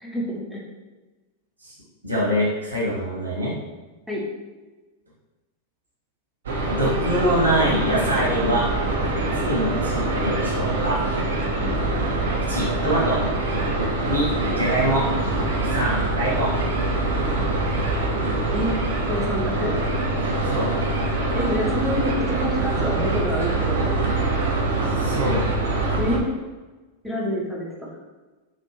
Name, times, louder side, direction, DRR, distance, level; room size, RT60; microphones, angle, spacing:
voice 1, 0.0-0.6 4.1-4.2 11.6-11.8 14.5-14.6 16.0-16.1 18.5-18.7 19.1-19.8 21.3-24.0 26.0-26.3 27.0-27.9, equal, ahead, -5 dB, 0.8 m, -27 dB
voice 2, 2.0-3.6 6.7-8.6 9.3-11.0 12.4-13.2 14.1-14.3 14.5-15.0 15.6-16.5 20.4-20.7 24.8-25.4, equal, 85° right, -7 dB, 1.4 m, -24 dB
sound 1, 6.5-26.2, right 2 dB, 65° right, 0.6 m, -24 dB
3.3 x 2.4 x 3.1 m, 1.2 s
figure-of-eight pair, 90°, 0 cm